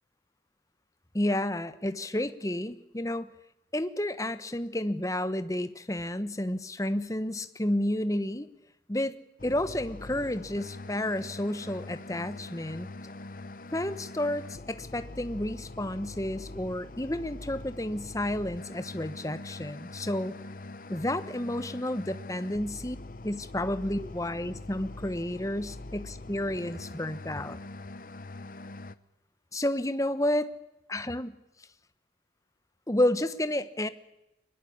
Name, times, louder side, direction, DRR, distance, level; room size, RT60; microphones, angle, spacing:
voice 1, 1.1-3.3 3.7-8.5 8.9-9.1 9.4-12.9 13.7-20.4 20.9-23.0 23.2-27.6 29.5-30.5 30.9-31.3 32.9-33.9, left 1 dB, 20° left, 12 dB, 1.1 m, -31 dB
sound 1, 9.4-29.0, left 2 dB, 50° left, 0.9 m, -43 dB
24.0 x 21.0 x 8.7 m, 0.89 s
head